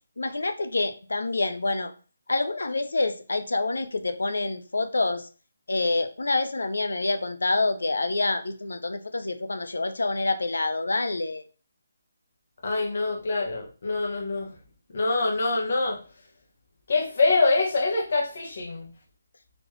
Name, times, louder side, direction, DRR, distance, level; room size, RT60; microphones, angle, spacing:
voice 1, 0.2-1.9 2.3-5.3 5.7-11.4, left 2 dB, 85° left, 10 dB, 0.6 m, -27 dB
voice 2, 12.6-14.5 14.9-16.0 16.9-18.9, left 3 dB, 55° left, 3 dB, 1.2 m, -25 dB
4.2 x 3.0 x 3.1 m, 0.36 s
figure-of-eight pair, 160°, 0 cm